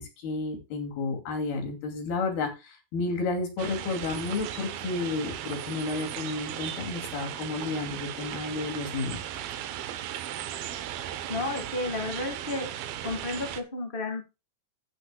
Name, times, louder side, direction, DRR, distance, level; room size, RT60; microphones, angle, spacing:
voice 1, 0.0-9.2, left 3 dB, 90° left, 4 dB, 4.6 m, -31 dB
sound 1, 3.6-13.6, right 11 dB, 75° right, 2.7 m, -37 dB
voice 2, 11.3-12.7 13.0-14.2, left 2 dB, 20° left, 5 dB, 1.5 m, -32 dB
14.0 x 8.9 x 2.3 m, 0.26 s
omnidirectional pair, 4.3 m